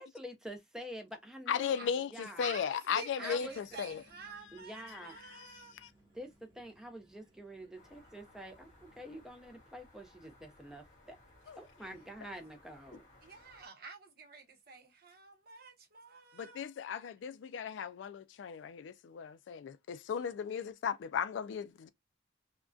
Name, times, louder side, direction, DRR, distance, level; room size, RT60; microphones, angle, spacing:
voice 1, 0.0-2.4 3.2-3.6 4.5-5.2 6.1-11.2 11.6-13.0, equal, 5° right, 0.4 m, -47 dB
voice 2, 1.5-4.0 4.4-5.9 11.5-11.6 16.3-21.9, left 7 dB, 80° left, 0.3 m, -37 dB
voice 3, 2.4-5.7 13.2-16.6, right 3 dB, 55° right, 0.8 m, -49 dB
sound 1, 3.4-9.3, right 1 dB, 25° right, 1.1 m, -67 dB
sound 2, 7.7-13.7, left 2 dB, 45° left, 0.9 m, -62 dB
2.5 x 2.1 x 2.3 m
head